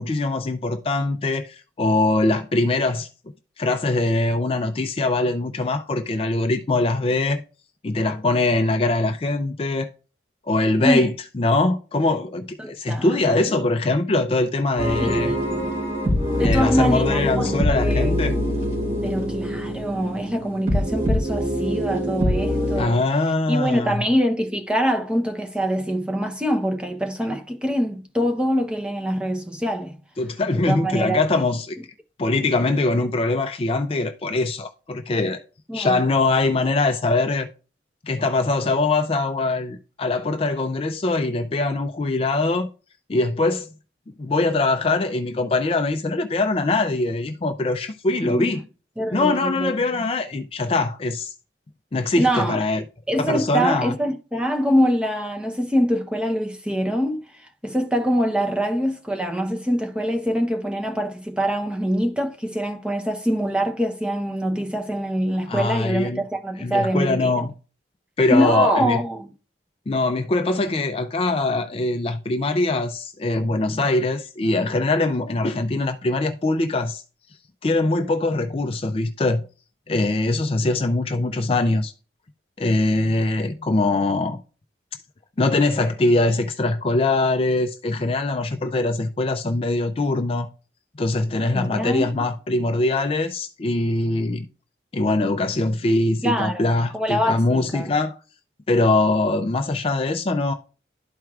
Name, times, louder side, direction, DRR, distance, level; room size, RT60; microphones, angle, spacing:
voice 1, 0.0-3.1 3.6-7.4 7.8-9.9 10.5-15.3 16.4-18.3 22.8-24.0 30.2-31.8 32.2-35.4 35.7-37.5 38.0-42.7 43.1-43.7 44.2-48.6 49.1-51.3 51.9-52.8 53.2-53.9 65.5-66.2 66.6-67.5 68.2-69.0 69.9-77.0 77.6-79.4 79.9-81.9 82.6-84.4 85.4-90.5 91.0-94.5 94.9-98.2 98.7-100.5, left 2 dB, 30° left, 0.4 m, -22 dB
voice 2, 12.6-13.4 15.0-15.8 16.4-18.1 19.0-23.0 23.5-30.0 30.5-31.4 35.7-36.0 48.2-48.6 49.0-49.9 52.2-52.6 53.1-67.5 68.3-69.3 91.5-92.2 96.2-96.7 96.9-97.9, equal, 5° right, 0.7 m, -24 dB
sound 1, 14.8-22.8, equal, 40° right, 3.0 m, -24 dB
12.0 x 4.5 x 2.4 m
head